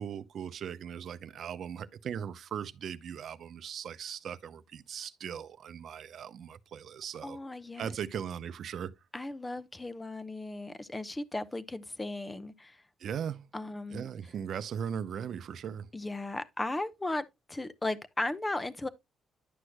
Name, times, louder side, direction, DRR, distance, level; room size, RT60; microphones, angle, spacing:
voice 1, 0.0-7.4 7.8-8.9 13.0-13.5 13.9-15.9, right 8 dB, 65° right, 0.6 m, -38 dB
voice 2, 7.2-7.9 9.1-12.8 13.5-14.1 15.9-18.9, left 2 dB, 15° left, 0.8 m, -36 dB
11.0 x 6.2 x 2.2 m
cardioid pair, 90°, 0 cm